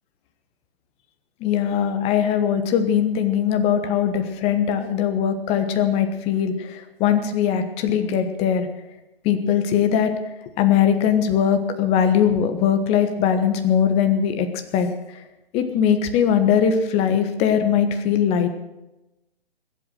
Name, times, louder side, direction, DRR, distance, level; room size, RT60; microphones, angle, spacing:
voice 1, 1.4-8.7 9.2-10.1 10.6-14.5 14.7-15.2 15.5-18.6, left 8 dB, 20° left, 8 dB, 1.4 m, -20 dB
21.0 x 8.5 x 7.6 m, 0.98 s
figure-of-eight pair, 135°, 31 cm